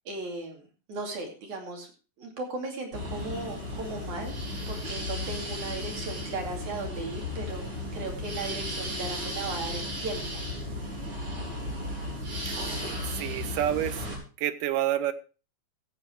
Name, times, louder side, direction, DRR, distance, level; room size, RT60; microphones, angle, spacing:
voice 1, 0.1-1.9 2.2-4.4 4.7-7.6 7.9-10.4, right 2 dB, 65° right, 1 dB, 3.9 m, -37 dB
sound 1, 2.9-14.2, left 1 dB, 40° right, 4.8 m, -35 dB
voice 2, 13.1-14.1 14.4-15.1, right 12 dB, 85° right, 11 dB, 2.5 m, -28 dB
15.5 x 7.9 x 4.5 m, 0.35 s
omnidirectional pair, 3.7 m